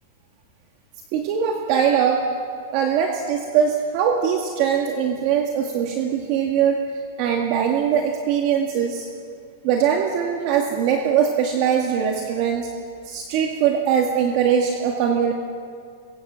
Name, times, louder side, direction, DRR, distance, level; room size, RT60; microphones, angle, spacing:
voice 1, 1.1-2.3 2.7-6.8 7.2-9.1 9.6-12.7 13.0-15.3, right 8 dB, 35° right, 2 dB, 2.1 m, -21 dB
27.0 x 22.5 x 7.7 m, 2.2 s
supercardioid pair, 170°, 0 cm